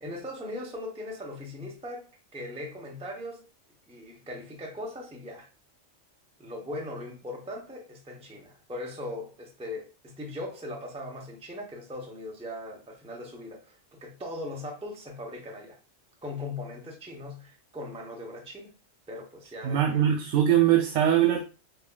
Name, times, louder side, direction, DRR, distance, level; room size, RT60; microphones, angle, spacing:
voice 1, 0.0-3.5 3.9-5.5 6.4-15.8 16.2-18.7 19.1-20.1, left 1 dB, 5° right, 0.5 m, -39 dB
voice 2, 19.6-21.4, right 10 dB, 85° right, 0.9 m, -22 dB
5.4 x 2.3 x 2.2 m
omnidirectional pair, 1.3 m